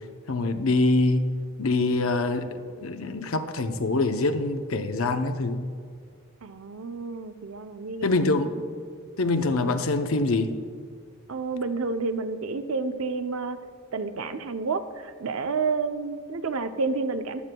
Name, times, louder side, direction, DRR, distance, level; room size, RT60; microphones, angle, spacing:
voice 1, 0.3-1.3 1.6-5.6 8.0-8.5 9.2-10.5, left 2 dB, 70° left, 7 dB, 0.7 m, -24 dB
voice 2, 6.4-8.3 11.3-13.6 13.9-17.4, right 4 dB, 70° right, 9 dB, 0.6 m, -30 dB
15.5 x 11.5 x 2.3 m, 2.1 s
head